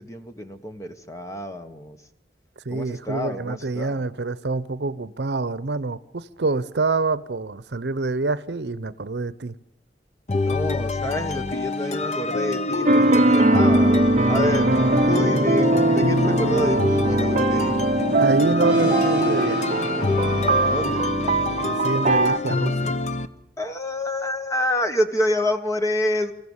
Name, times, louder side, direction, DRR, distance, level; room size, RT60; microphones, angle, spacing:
voice 1, 0.0-2.0 2.7-4.0 10.4-14.0 14.3-14.7 15.1-17.9 20.6-21.2 23.6-26.3, left 1 dB, 20° left, 1.2 m, -28 dB
voice 2, 2.6-9.5 18.2-19.6 21.6-22.9, right 3 dB, 75° right, 0.7 m, -26 dB
sound 1, 10.3-23.3, left 3 dB, 40° left, 0.9 m, -26 dB
sound 2, 12.9-22.4, right 2 dB, 40° right, 0.8 m, -20 dB
Brass instrument, 17.6-21.4, equal, 60° left, 6.5 m, -35 dB
25.5 x 14.5 x 7.2 m
head